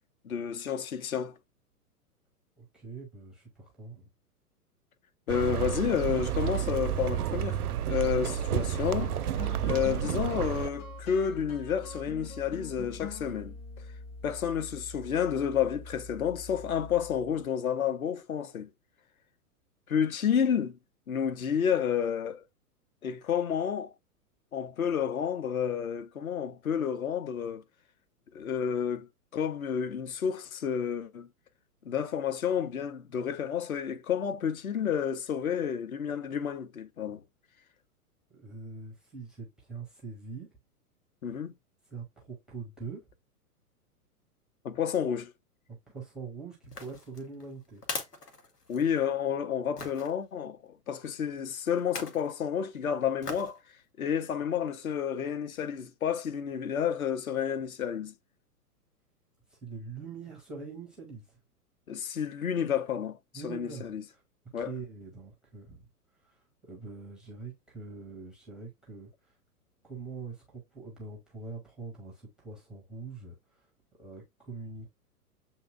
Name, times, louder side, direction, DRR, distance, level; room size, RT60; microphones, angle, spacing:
voice 1, 0.2-1.4 5.3-7.6 7.9-13.5 14.2-18.7 19.9-20.8 21.1-22.4 23.0-23.9 24.5-27.6 28.3-29.1 29.3-31.3 31.8-37.2 41.2-41.5 44.6-45.3 48.7-53.6 54.0-58.1 61.9-63.2 63.4-64.0 64.5-64.7, left 8 dB, 65° left, 0.8 m, -30 dB
voice 2, 2.6-4.1 38.3-40.5 41.9-43.1 45.7-47.8 59.5-61.4 63.3-64.2 64.6-65.9 66.2-69.4 69.8-73.7 74.0-74.9, right 4 dB, ahead, 0.5 m, -44 dB
sound 1, 5.3-10.7, right 10 dB, 70° right, 0.5 m, -30 dB
sound 2, 7.8-17.4, left 4 dB, 40° left, 1.2 m, -44 dB
sound 3, 46.6-49.1 49.8-50.1 51.8-52.3 53.2-53.6 54.1-54.2, left 3 dB, 85° left, 1.2 m, -40 dB
7.4 x 2.7 x 2.4 m
figure-of-eight pair, 110°, 46 cm